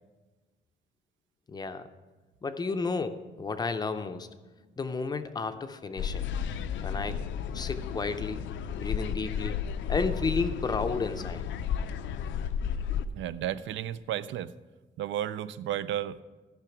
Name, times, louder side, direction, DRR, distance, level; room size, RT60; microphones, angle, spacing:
voice 1, 1.5-1.9 2.4-4.3 4.8-6.2 6.8-7.2 7.5-8.4 8.7-9.6 9.9-11.5, left 4 dB, 20° left, 9 dB, 0.5 m, -32 dB
sound 1, 6.0-13.1, left 7 dB, 80° left, 0.5 m, -33 dB
voice 2, 13.1-14.5 15.0-16.2, right 11 dB, 80° right, 15 dB, 0.4 m, -33 dB
13.5 x 5.9 x 5.8 m, 1.2 s
cardioid pair, 165°, 19 cm